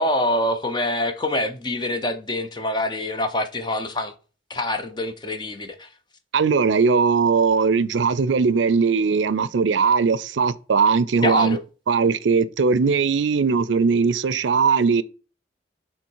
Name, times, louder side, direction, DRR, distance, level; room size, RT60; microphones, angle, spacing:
voice 1, 0.0-4.1 4.5-5.9 11.2-11.6, left 1 dB, 25° left, 0.7 m, -25 dB
voice 2, 6.3-11.6 11.9-15.0, right 5 dB, 85° right, 0.5 m, -19 dB
7.1 x 3.7 x 4.6 m
head